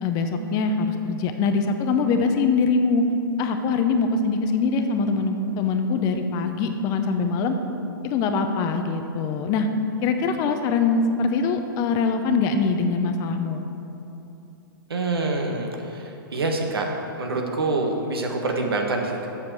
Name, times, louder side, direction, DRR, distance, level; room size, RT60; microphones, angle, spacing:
voice 1, 0.0-3.1 3.4-7.6 8.0-9.7 10.0-13.6, left 4 dB, 30° left, 6 dB, 0.7 m, -23 dB
voice 2, 14.9-16.9 17.2-19.3, right 3 dB, 90° right, 2 dB, 1.4 m, -26 dB
7.7 x 6.7 x 6.1 m, 2.9 s
hypercardioid pair, 140°, 12 cm